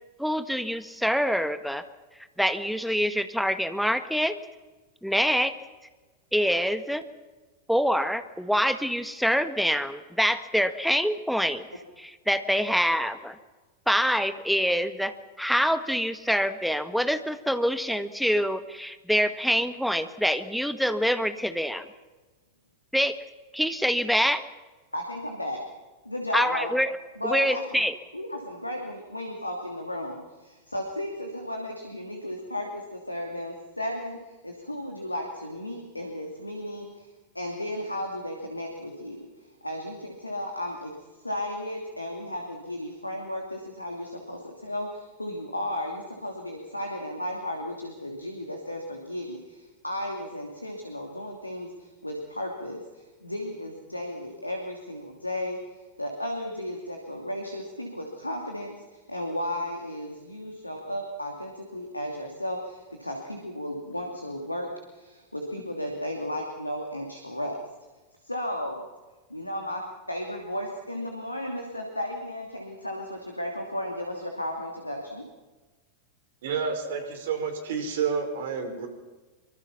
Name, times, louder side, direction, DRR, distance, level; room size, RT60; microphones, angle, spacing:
voice 1, 0.2-1.8 2.4-4.4 5.0-5.5 6.3-7.0 7.7-11.6 12.0-13.4 13.9-21.8 22.9-23.2 23.5-24.4 26.3-26.9 27.2-27.9, equal, ahead, 10 dB, 1.5 m, -25 dB
voice 2, 24.9-25.6 26.0-26.7 27.2-27.8 28.1-34.2 34.4-37.1 37.3-40.9 41.2-67.5 68.2-68.8 69.3-75.2, left 1 dB, 85° left, 2 dB, 2.7 m, -34 dB
voice 3, 76.4-78.9, right 6 dB, 55° right, 7 dB, 4.9 m, -29 dB
24.5 x 24.0 x 5.9 m, 1.2 s
figure-of-eight pair, 90°, 0 cm